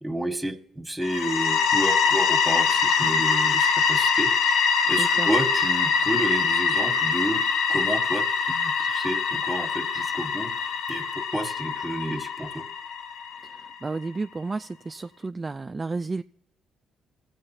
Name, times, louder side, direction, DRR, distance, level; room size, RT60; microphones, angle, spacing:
voice 1, 0.0-4.4 4.6-12.7, right 1 dB, 10° right, 7 dB, 1.3 m, -31 dB
sound 1, 1.0-13.7, left 6 dB, 70° left, 0.5 m, -24 dB
voice 2, 5.0-5.3 13.4-16.2, right 3 dB, 30° right, 8 dB, 0.3 m, -32 dB
19.5 x 7.8 x 2.7 m, 0.76 s
hypercardioid pair, 50°, 0 cm